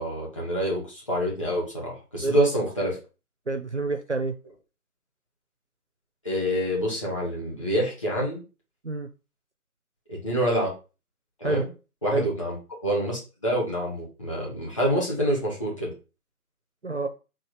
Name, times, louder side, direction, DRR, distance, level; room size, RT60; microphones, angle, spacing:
voice 1, 0.0-3.0 6.2-8.4 10.1-10.7 11.4-11.7 12.0-12.6 12.8-15.9, equal, 20° left, -5 dB, 1.5 m, -26 dB
voice 2, 3.5-4.3 8.8-9.1 11.4-11.6 12.1-12.3 16.8-17.1, right 3 dB, 50° right, 8 dB, 0.5 m, -27 dB
4.3 x 2.5 x 4.7 m, 0.32 s
figure-of-eight pair, 170°, 45 cm